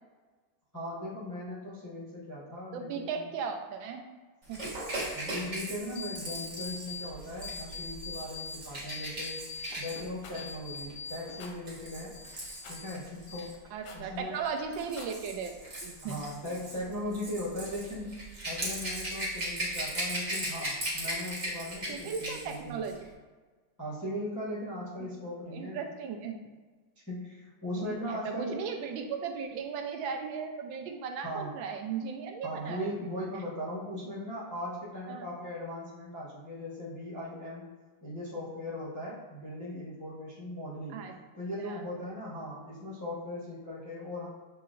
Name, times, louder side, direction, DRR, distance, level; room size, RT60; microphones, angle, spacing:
voice 1, 0.7-3.2 5.1-9.4 9.8-12.2 12.7-13.5 13.9-14.4 16.0-18.2 18.4-22.8 23.8-25.8 27.1-28.6 31.2-31.5 32.4-37.6 38.0-41.0 41.4-44.3, left 1 dB, 20° left, -8 dB, 0.5 m, -38 dB
voice 2, 2.7-4.0 4.5-4.6 13.7-16.2 21.9-22.9 25.0-25.1 25.5-26.4 27.8-33.0 35.1-35.3 40.9-41.1 41.6-41.8, right 6 dB, 75° right, 4 dB, 1.2 m, -37 dB
Rattle / Rattle (instrument), 4.5-13.5 14.5-22.6 22.8-23.0, right 1 dB, 30° right, 0.9 m, -38 dB
sound 1, 6.0-7.1 7.4-8.6 8.9-11.5 11.8-13.0 13.3-13.9, left 5 dB, 90° left, 0.7 m, -42 dB
Rattle, 10.2-10.4 11.4-11.6 12.6-12.8 13.8-14.1 14.8-15.2, left 4 dB, 70° left, 1.1 m, -47 dB
7.5 x 2.9 x 2.4 m, 1.4 s
omnidirectional pair, 2.3 m